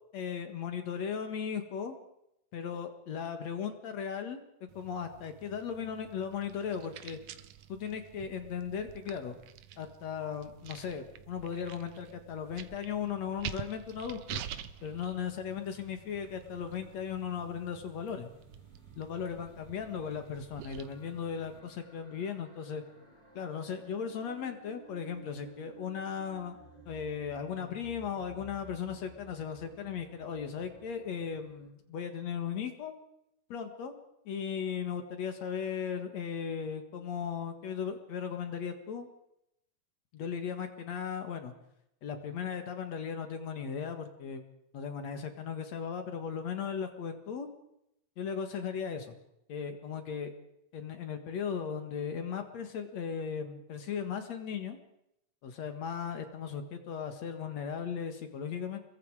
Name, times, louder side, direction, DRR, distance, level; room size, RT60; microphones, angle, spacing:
voice 1, 0.1-1.9 2.5-4.4 4.8-7.2 7.7-9.4 9.8-14.4 14.8-18.3 19.0-22.8 23.3-26.6 26.9-32.9 33.5-33.9 34.3-39.1 40.1-41.5 42.0-44.4 44.7-47.5 48.2-49.1 49.5-50.3 50.7-54.8 55.4-58.8, left 7 dB, 65° left, 7 dB, 2.9 m, -37 dB
sound 1, 4.7-21.6, right 10 dB, 90° right, 2.4 m, -48 dB
sound 2, 15.3-31.7, right 2 dB, 15° left, 4.6 m, -57 dB
28.0 x 22.5 x 4.9 m, 0.81 s
omnidirectional pair, 3.3 m